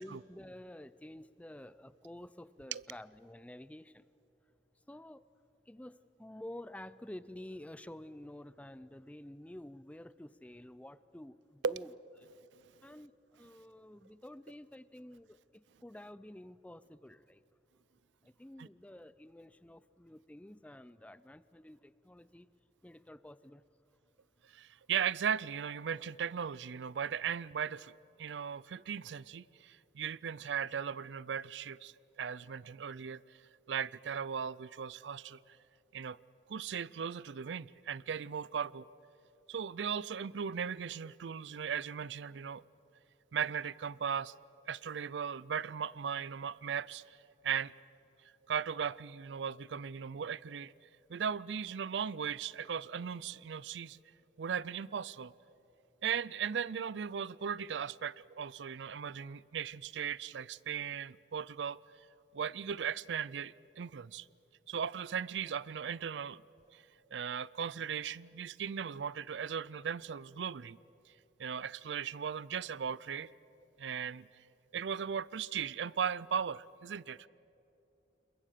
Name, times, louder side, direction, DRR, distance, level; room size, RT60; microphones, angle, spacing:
voice 1, 0.0-4.0 4.9-5.3 5.7-11.9 12.2-12.3 12.8-17.4 18.2-22.5 22.8-23.6, left 1 dB, 10° left, 0.4 m, -50 dB
voice 2, 24.5-27.9 28.2-33.2 33.7-35.6 35.9-36.2 36.5-38.9 39.5-42.6 43.3-44.3 44.7-47.2 47.4-47.7 48.5-50.7 51.1-54.0 54.4-55.3 56.0-61.8 62.3-64.3 64.7-66.4 66.7-66.8 67.1-70.8 71.4-73.3 73.8-74.3 74.7-77.3, right 7 dB, 85° right, 0.4 m, -37 dB
28.0 x 22.0 x 6.7 m
head